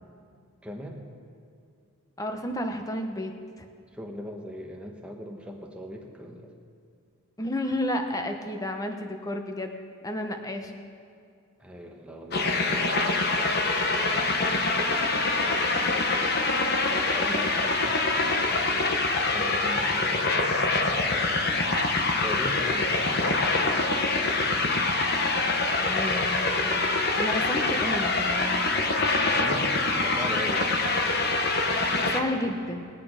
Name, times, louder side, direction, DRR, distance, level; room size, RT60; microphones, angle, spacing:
voice 1, 0.6-1.1 3.9-6.5 11.6-16.3 16.8-21.6 22.2-24.3 29.3-30.8 32.2-32.5, equal, 5° right, 1 dB, 1.1 m, -41 dB
voice 2, 2.2-3.3 7.4-9.8 10.0-10.8 25.8-28.6 32.0-32.9, left 1 dB, 15° left, 5 dB, 0.8 m, -31 dB
sound 1, 12.3-32.2, left 3 dB, 45° left, 0.9 m, -25 dB
20.5 x 8.4 x 5.0 m, 2.3 s
head